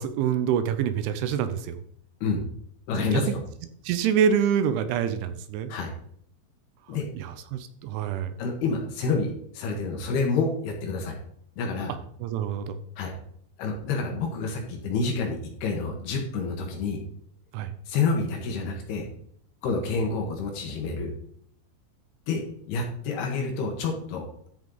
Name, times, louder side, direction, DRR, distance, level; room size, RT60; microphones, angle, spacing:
voice 1, 0.0-1.8 3.0-3.4 3.8-5.7 6.9-8.4 12.2-12.8 17.5-17.7, right 8 dB, 80° right, 10 dB, 3.1 m, -26 dB
voice 2, 2.9-3.4 5.7-5.9 6.9-7.1 8.4-11.2 11.6-11.9 13.0-13.1 13.6-17.0 17.9-19.1 19.6-21.1 22.3-22.4 22.7-24.2, left 4 dB, 65° left, 2 dB, 3.0 m, -28 dB
13.0 x 5.6 x 3.9 m, 0.65 s
omnidirectional pair, 5.6 m